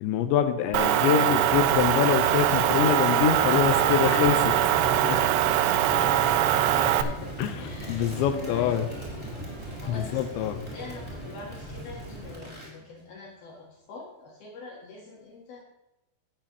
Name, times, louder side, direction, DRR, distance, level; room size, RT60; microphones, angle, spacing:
voice 1, 0.0-4.5 5.0-5.2 7.4-8.9 9.9-10.6, left 9 dB, 85° left, 9 dB, 2.9 m, -25 dB
voice 2, 0.6-1.1 4.7-7.3 7.6-9.1 9.8-15.6, left 3 dB, 65° left, -2 dB, 2.9 m, -43 dB
Motor vehicle (road) / Engine, 0.7-7.0, right 12 dB, 90° right, 3.1 m, -22 dB
Crackle, 1.2-12.7, equal, ahead, 3.7 m, -37 dB
sound 1, 2.0-13.2 13.5-13.6, right 1 dB, 75° right, 6.0 m, -48 dB
15.5 x 8.9 x 3.0 m, 0.93 s
omnidirectional pair, 5.5 m